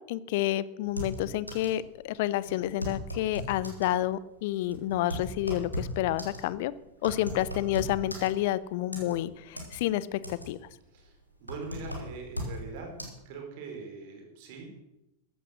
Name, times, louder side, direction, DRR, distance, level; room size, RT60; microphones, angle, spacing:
voice 1, 0.1-6.7 7.0-10.6, left 14 dB, 50° left, 18 dB, 0.7 m, -29 dB
sound 1, 0.8-1.8 2.1-2.2 2.5-3.9 4.5-8.6 8.9-9.8 10.1-10.7 11.0-12.6 13.0-13.1, equal, 90° left, 3.6 m, -37 dB
voice 2, 10.9-12.9 13.2-14.7, right 4 dB, 50° right, 2 dB, 4.4 m, -42 dB
14.5 x 12.0 x 6.4 m, 0.89 s
figure-of-eight pair, 90°, 0 cm